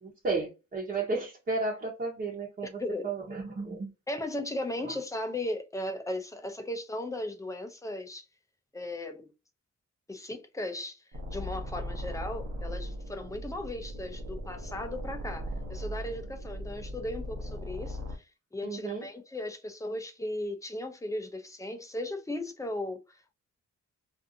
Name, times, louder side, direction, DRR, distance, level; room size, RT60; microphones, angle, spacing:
voice 1, 0.0-2.8 3.0-3.9 18.6-19.0, right 3 dB, 30° right, 0.8 m, -33 dB
voice 2, 2.8-3.1 4.1-8.2 8.7-9.3 10.1-18.2 18.5-23.3, left 1 dB, 10° left, 0.4 m, -37 dB
sound 1, 11.1-18.1, equal, 70° right, 0.8 m, -38 dB
2.5 x 2.4 x 2.6 m
wide cardioid pair, 155°, 30 cm